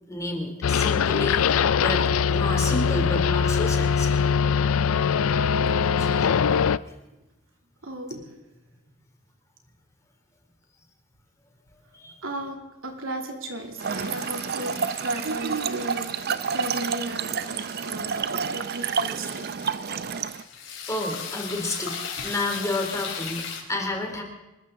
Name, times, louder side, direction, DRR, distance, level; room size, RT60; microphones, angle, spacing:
voice 1, 0.1-4.2 6.0-6.3 11.9-12.2 20.9-24.2, left 2 dB, 15° left, 2 dB, 2.9 m, -31 dB
sound 1, 0.6-6.8, left 6 dB, 85° left, 0.4 m, -22 dB
voice 2, 7.8-8.2 12.2-14.7 15.0-16.1 16.5-19.4, right 1 dB, 75° right, 2 dB, 2.8 m, -35 dB
sound 2, 13.8-23.6, left 6 dB, 65° left, 3.8 m, -39 dB
Trickle dribble / Fill (with liquid), 13.8-20.4, right 6 dB, 50° right, 0.5 m, -29 dB
25.5 x 14.0 x 3.8 m, 1.0 s
head